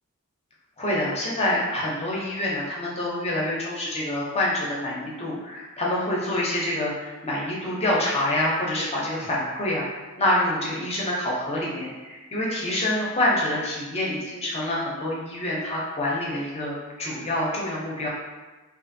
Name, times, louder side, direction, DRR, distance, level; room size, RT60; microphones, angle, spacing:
voice 1, 0.8-18.1, left 1 dB, 30° left, -4 dB, 0.5 m, -26 dB
2.5 x 2.5 x 2.5 m, 1.2 s
head